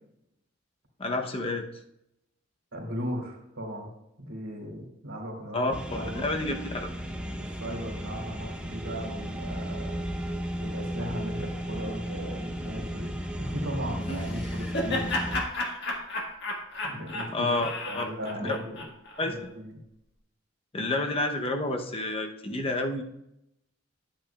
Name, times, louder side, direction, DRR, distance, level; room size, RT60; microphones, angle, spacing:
voice 1, 1.0-1.7 5.5-5.7 6.2-6.6 6.8-6.9 14.1-14.2 17.3-18.1 18.4-18.6 19.2-19.5 20.7-23.0, left 2 dB, 30° left, 4 dB, 0.7 m, -29 dB
voice 2, 2.7-3.9 4.3-5.7 5.9-6.3 7.4-10.0 10.6-15.1 16.8-17.5 17.9-18.9 19.2-19.8, equal, 80° right, -1 dB, 2.6 m, -37 dB
sound 1, 5.7-15.4, equal, 5° right, 0.6 m, -34 dB
Laughter, 14.1-19.3, left 2 dB, 55° left, 1.6 m, -33 dB
11.0 x 8.7 x 2.3 m, 0.82 s
head